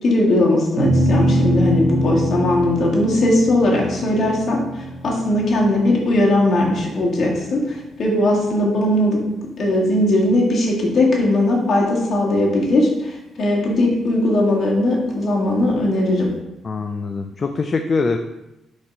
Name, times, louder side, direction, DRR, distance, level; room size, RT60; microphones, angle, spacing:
voice 1, 0.0-9.2 9.6-16.3, left 1 dB, 55° left, -3 dB, 2.0 m, -19 dB
sound 1, 0.8-7.3, right 1 dB, 55° right, 2.0 m, -23 dB
voice 2, 16.6-18.2, left 4 dB, 40° left, 6 dB, 0.4 m, -23 dB
4.8 x 4.2 x 5.3 m, 0.93 s
cardioid pair, 90°, 0 cm